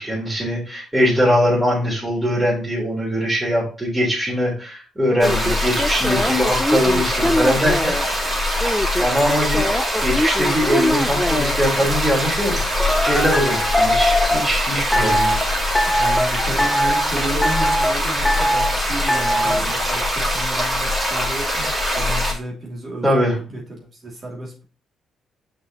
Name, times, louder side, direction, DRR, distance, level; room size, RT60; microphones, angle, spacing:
voice 1, 0.0-7.9 9.0-9.7 10.0-12.6 13.0-15.6 19.4-19.5 21.5-21.7 23.0-23.4, equal, 10° right, -5 dB, 3.6 m, -21 dB
sound 1, 5.1-8.0 8.6-11.5 12.8-14.5 14.9-15.4 15.8-16.3 16.6-17.1 17.4-18.0 18.3-18.7 19.1-19.6, equal, 10° left, 0.4 m, -21 dB
sound 2, 5.2-22.3, left 1 dB, 25° right, 3.0 m, -22 dB
voice 2, 15.9-24.6, right 1 dB, 45° right, -1 dB, 2.6 m, -32 dB
6.6 x 5.5 x 3.0 m, 0.35 s
cardioid pair, 90°, 0 cm